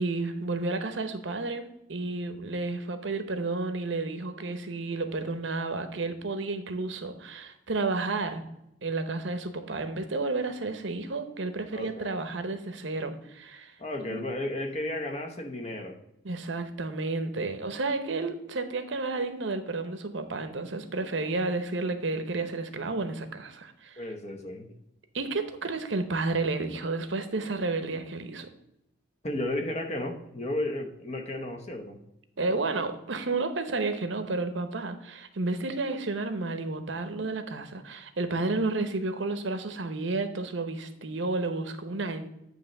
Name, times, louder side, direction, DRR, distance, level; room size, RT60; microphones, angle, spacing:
voice 1, 0.0-8.4 8.8-13.7 14.0-14.2 16.2-24.0 25.1-28.5 32.4-42.3, right 3 dB, 80° right, 9 dB, 0.9 m, -31 dB
voice 2, 11.7-12.1 13.8-16.0 24.0-24.8 29.2-32.0, left 1 dB, 35° left, 4 dB, 1.0 m, -33 dB
9.3 x 3.2 x 6.5 m, 0.82 s
head